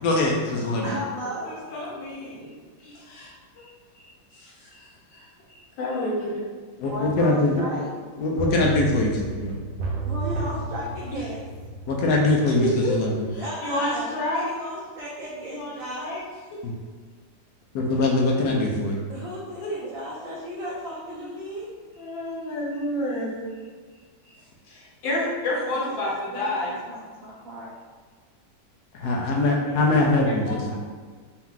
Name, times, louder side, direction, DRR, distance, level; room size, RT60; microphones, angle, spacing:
voice 1, 0.0-0.9 6.8-7.6 8.2-9.5 11.9-13.1 16.6-16.7 17.7-19.1 28.9-30.7, left 2 dB, 70° left, -1 dB, 1.0 m, -22 dB
voice 2, 0.8-1.5 6.9-7.9 10.1-11.4 13.4-16.1 19.1-21.7 25.8-27.7 29.1-30.1, equal, 65° right, -5 dB, 0.9 m, -35 dB
voice 3, 1.4-2.5 2.8-3.7 3.9-6.4 12.4-12.5 12.8-14.5 15.5-16.2 19.6-19.7 21.1-21.3 22.0-23.4 24.6-26.7 30.4-30.7, left 1 dB, 85° left, -4 dB, 1.7 m, -31 dB
sound 1, 8.4-13.1 13.4-13.5, right 3 dB, 85° right, 1.3 m, -32 dB
4.4 x 2.4 x 3.6 m, 1.5 s
omnidirectional pair, 2.0 m